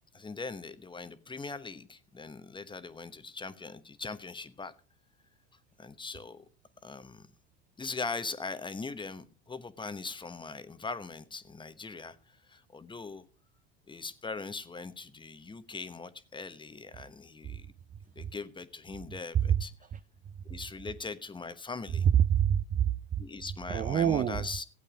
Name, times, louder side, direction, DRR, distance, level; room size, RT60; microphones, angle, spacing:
voice 1, 0.1-4.7 5.8-6.4 6.8-7.3 7.8-13.2 13.9-17.7 18.1-19.7 20.4-22.1 23.2-24.6, left 4 dB, 15° left, 1.1 m, -41 dB
voice 2, 21.9-23.2 23.7-24.5, right 9 dB, 25° right, 0.5 m, -26 dB
16.0 x 8.4 x 5.0 m
hypercardioid pair, 95°, 32 cm